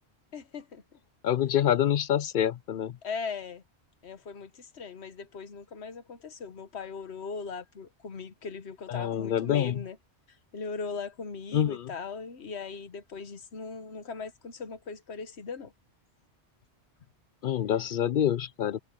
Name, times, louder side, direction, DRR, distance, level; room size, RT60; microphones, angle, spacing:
voice 1, 0.3-0.8 3.0-3.6 4.0-10.0 10.5-15.7, left 5 dB, 80° left, 1.4 m, -39 dB
voice 2, 1.2-2.9 8.9-9.8 11.5-11.9 17.4-18.8, left 10 dB, 60° left, 0.6 m, -26 dB
omnidirectional pair, 1.1 m